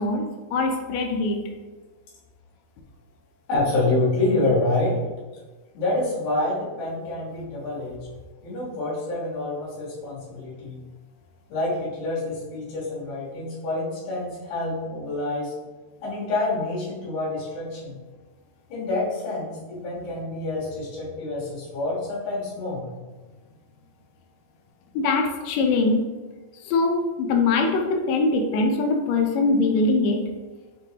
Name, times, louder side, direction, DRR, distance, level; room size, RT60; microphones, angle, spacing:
voice 1, 0.0-1.4 24.9-26.0 26.6-30.2, left 3 dB, 90° left, 3 dB, 1.5 m, -22 dB
voice 2, 3.5-5.0 5.7-8.0 8.4-10.8 11.5-15.5 16.0-18.0 18.7-22.9, left 2 dB, 70° left, -8 dB, 2.7 m, -27 dB
6.6 x 2.2 x 2.8 m, 1.2 s
omnidirectional pair, 3.7 m